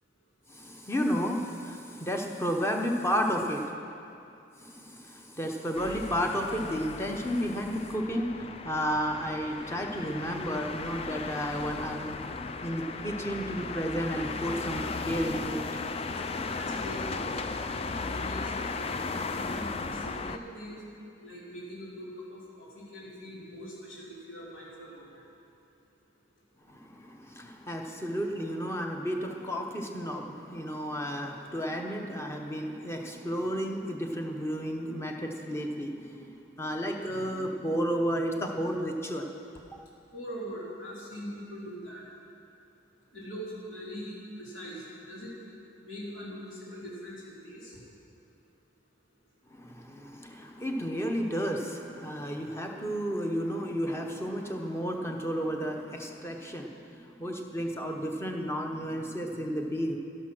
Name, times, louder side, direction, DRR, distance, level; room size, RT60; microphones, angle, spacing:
voice 1, 0.5-3.7 4.6-12.1 12.6-15.6 26.7-39.3 49.5-60.0, equal, 15° left, 2 dB, 0.9 m, -32 dB
sound 1, 5.7-20.4, left 4 dB, 30° left, 0.4 m, -36 dB
voice 2, 16.5-17.6 18.1-20.8 21.2-25.1 40.1-42.0 43.1-45.3 45.8-47.8, equal, 90° left, -6 dB, 3.7 m, -42 dB
12.0 x 11.0 x 6.1 m, 2.6 s
head